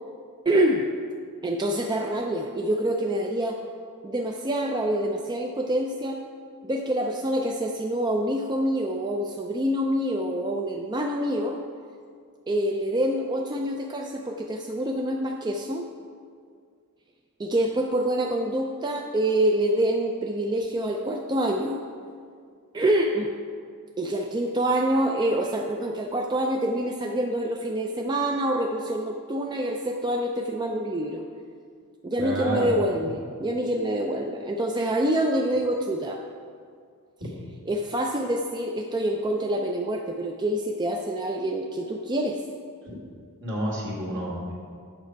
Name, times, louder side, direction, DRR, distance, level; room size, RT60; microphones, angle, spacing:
voice 1, 0.5-0.9 1.4-3.6 4.0-6.2 6.6-11.6 12.5-15.9 17.4-21.8 22.7-23.3 24.0-31.2 32.0-36.2 37.7-42.4, right 1 dB, 20° right, 2 dB, 0.4 m, -26 dB
voice 2, 32.2-32.7 43.4-44.5, equal, 60° right, -4 dB, 2.1 m, -29 dB
8.8 x 6.6 x 4.6 m, 2.2 s
head